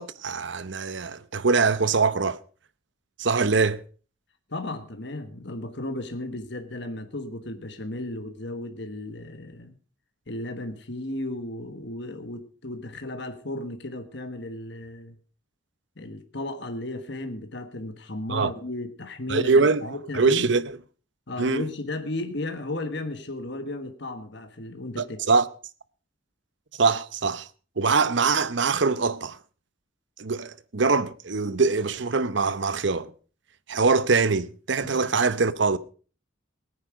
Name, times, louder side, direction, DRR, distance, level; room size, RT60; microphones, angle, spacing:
voice 1, 0.0-2.4 3.2-3.8 18.3-18.5 19.3-20.8 21.4-21.6 25.0-25.5 26.8-27.5 27.8-29.4 30.2-33.1 33.7-35.8, right 4 dB, 60° right, 0.8 m, -23 dB
voice 2, 4.5-9.7 10.3-15.1 16.0-20.5 21.3-25.2 34.8-34.9, left 2 dB, 55° left, 1.4 m, -34 dB
18.0 x 9.6 x 5.1 m
head